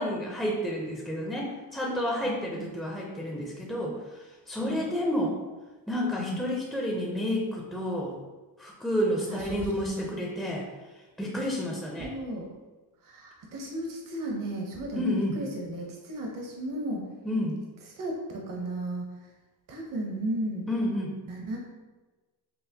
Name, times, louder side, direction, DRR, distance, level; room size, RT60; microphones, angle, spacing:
voice 1, 0.0-5.4 5.9-8.2 8.6-10.7 11.2-12.1 14.9-15.4 17.2-17.6 20.7-21.1, equal, ahead, -3 dB, 0.5 m, -30 dB
voice 2, 2.2-2.7 4.6-4.9 6.2-6.4 9.3-10.1 12.0-12.5 13.0-17.0 18.0-19.1 19.7-20.7 21.3-21.6, right 1 dB, 55° right, -1 dB, 0.8 m, -35 dB
5.6 x 2.0 x 2.7 m, 1.2 s
cardioid pair, 110°, 38 cm